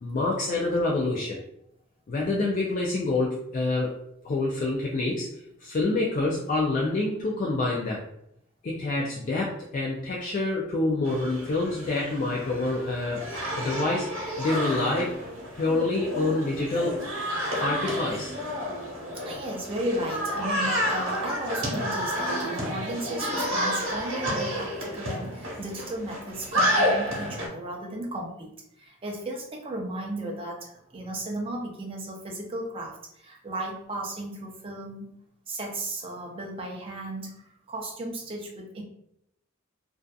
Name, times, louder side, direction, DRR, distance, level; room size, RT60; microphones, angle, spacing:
voice 1, 0.0-1.4 2.1-4.0 4.2-5.3 5.6-8.0 8.6-13.3 13.6-15.2 15.5-17.1 17.6-18.3, left 2 dB, 40° left, -2 dB, 0.3 m, -27 dB
sound 1, 11.0-27.5, equal, 90° right, 0.9 m, -30 dB
voice 2, 19.2-35.2 35.5-38.8, right 1 dB, 25° right, -1 dB, 0.5 m, -35 dB
2.6 x 2.3 x 2.3 m, 0.77 s
head